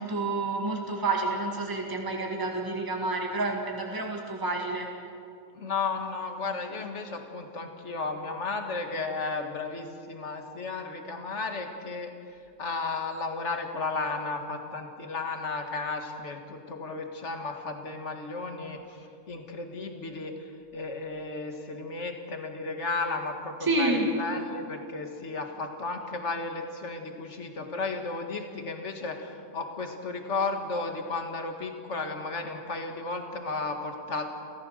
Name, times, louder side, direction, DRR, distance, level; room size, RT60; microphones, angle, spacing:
voice 1, 0.0-4.9 23.6-24.1, right 2 dB, 15° right, 1 dB, 1.9 m, -29 dB
voice 2, 5.5-12.1 12.6-20.3 20.7-34.2, left 3 dB, 55° left, 4 dB, 2.2 m, -34 dB
30.0 x 14.5 x 6.5 m, 2.4 s
omnidirectional pair, 1.5 m